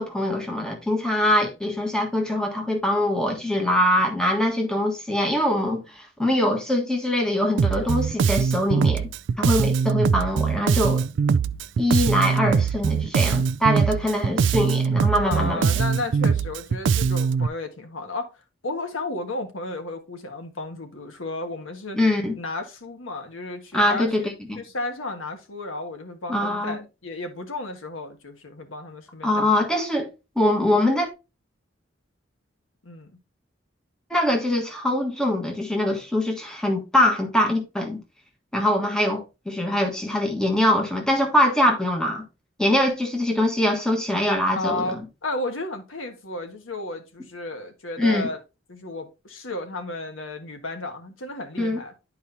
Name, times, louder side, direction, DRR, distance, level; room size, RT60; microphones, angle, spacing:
voice 1, 0.0-9.1 9.4-11.0 11.8-15.6 21.9-22.3 23.7-24.2 24.5-24.6 26.3-26.8 29.2-30.1 30.3-31.1 34.1-38.0 38.5-42.2 42.6-45.0 48.0-48.3 51.6-51.8, left 1 dB, 5° left, 1.5 m, -23 dB
Bass guitar, 7.6-17.5, right 6 dB, 65° right, 0.3 m, -22 dB
voice 2, 15.2-18.3 18.6-22.0 22.4-24.3 24.5-29.5 32.8-33.1 44.1-44.2 44.6-48.4 48.7-51.9, left 2 dB, 90° left, 1.5 m, -33 dB
11.0 x 4.8 x 2.7 m
head